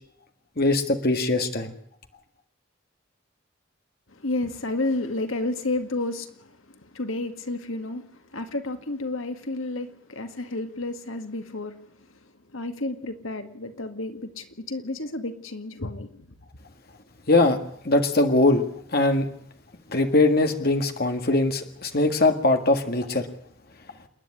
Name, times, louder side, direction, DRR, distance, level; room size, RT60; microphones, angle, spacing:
voice 1, 0.6-1.7 17.3-17.6 17.8-18.7 18.9-19.3 19.9-23.3, left 2 dB, 50° left, 1.8 m, -21 dB
voice 2, 4.1-16.3, left 2 dB, 80° left, 2.0 m, -31 dB
28.5 x 10.5 x 9.9 m
head